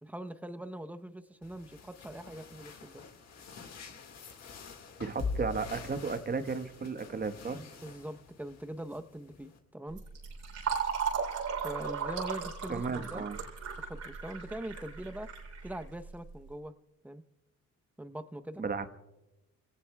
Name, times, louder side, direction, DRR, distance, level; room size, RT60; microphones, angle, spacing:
voice 1, 0.0-3.0 7.6-10.0 11.6-13.3 13.8-15.3 15.6-16.7 17.0-17.2 18.0-18.6, right 1 dB, 5° right, 8 dB, 0.8 m, -42 dB
sound 1, 1.4-9.6, left 4 dB, 60° left, 1.9 m, -44 dB
voice 2, 5.0-7.7 12.7-13.4 18.6-18.9, right 4 dB, 30° right, 8 dB, 1.3 m, -34 dB
Fill (with liquid), 9.9-16.3, right 6 dB, 70° right, 3.6 m, -36 dB
28.5 x 18.0 x 2.3 m, 1.0 s
cardioid pair, 90°, 30 cm